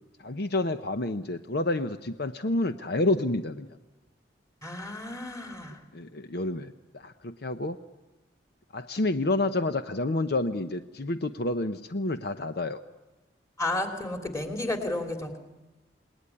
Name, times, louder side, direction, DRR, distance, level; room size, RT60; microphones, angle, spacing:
voice 1, 0.2-3.7 5.9-7.8 8.7-12.8, left 2 dB, 60° left, 9 dB, 0.8 m, -29 dB
voice 2, 4.6-5.8 13.6-15.4, left 2 dB, 20° left, 4 dB, 3.1 m, -32 dB
27.5 x 19.5 x 9.9 m, 1.1 s
head